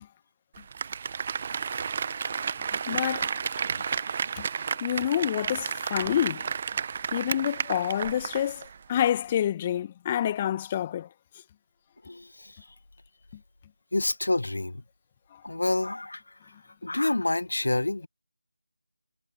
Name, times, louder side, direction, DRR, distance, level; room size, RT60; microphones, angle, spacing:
Applause, 0.6-8.8 9.1-9.2, right 6 dB, 30° right, 1.1 m, -32 dB
voice 1, 2.9-3.3 4.0-4.5 4.8-6.5 7.1-11.1 15.3-15.4, left 10 dB, 20° left, 1.5 m, -28 dB
voice 2, 12.0-12.6 13.9-14.8 15.4-16.4 16.8-18.1, left 2 dB, 65° left, 1.8 m, -28 dB
figure-of-eight pair, 160°, 0 cm